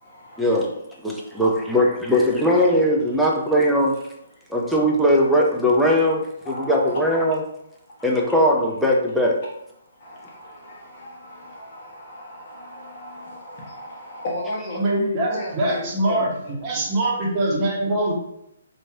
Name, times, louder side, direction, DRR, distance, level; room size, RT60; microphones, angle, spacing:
voice 1, 0.0-0.7 1.1-1.2 6.4-7.3 8.0-8.3 10.0-16.3 16.7-17.0, left 1 dB, 40° left, -4 dB, 1.3 m, -35 dB
voice 2, 1.0-3.9 4.5-7.4 8.0-9.4, equal, ahead, -3 dB, 0.6 m, -19 dB
voice 3, 14.7-18.1, right 1 dB, 30° right, -4 dB, 1.1 m, -23 dB
3.1 x 2.6 x 3.3 m, 0.79 s
figure-of-eight pair, 135°, 0 cm